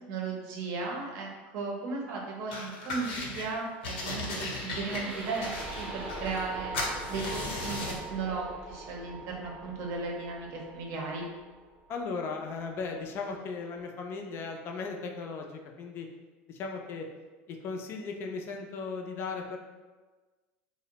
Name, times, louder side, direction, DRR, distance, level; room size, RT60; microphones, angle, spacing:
voice 1, 0.1-6.7 7.1-11.3, right 4 dB, 60° right, -1 dB, 0.6 m, -36 dB
sound 1, 2.5-3.5 3.8-6.5 6.7-8.1, left 2 dB, 85° left, 0.7 m, -36 dB
sound 2, 4.2-12.2, right 2 dB, 15° right, 0.6 m, -42 dB
voice 2, 11.9-16.1 16.5-17.1 17.5-19.6, left 4 dB, 45° left, 3 dB, 0.3 m, -37 dB
2.5 x 2.0 x 2.8 m, 1.3 s
supercardioid pair, 115°, 6 cm